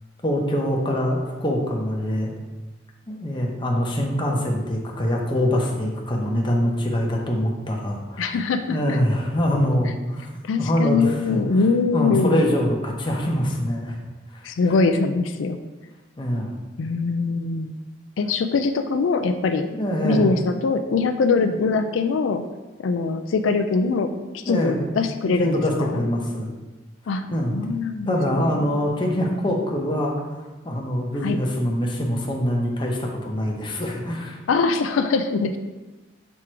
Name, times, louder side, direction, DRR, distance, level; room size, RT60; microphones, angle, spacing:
voice 1, 0.2-2.3 3.1-8.4 8.7-10.3 10.6-11.6 11.9-14.0 14.3-14.5 16.2-16.6 19.7-20.3 21.4-21.5 24.5-25.0 25.2-26.5 27.3-27.6 28.1-34.4, equal, 25° left, -1 dB, 0.9 m, -24 dB
voice 2, 8.2-9.0 10.4-12.4 14.4-15.6 16.8-17.8 18.2-19.7 20.0-22.4 22.8-26.0 27.1-27.3 27.5-28.8 31.2-31.4 34.5-35.6, left 4 dB, 85° left, 8 dB, 0.4 m, -22 dB
6.1 x 3.7 x 4.4 m, 1.2 s
head